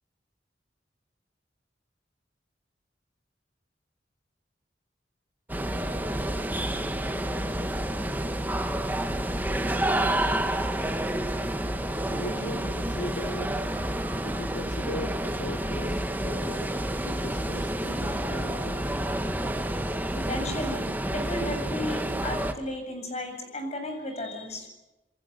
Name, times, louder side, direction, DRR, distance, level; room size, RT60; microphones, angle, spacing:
sound 1, 5.5-22.5, right 1 dB, 10° right, 1.7 m, -29 dB
voice 1, 12.1-13.5 14.2-16.7 17.0-18.8, equal, 80° left, 2 dB, 3.3 m, -38 dB
voice 2, 20.1-24.7, left 1 dB, 40° left, 5 dB, 7.8 m, -34 dB
28.5 x 22.5 x 8.3 m, 0.99 s
head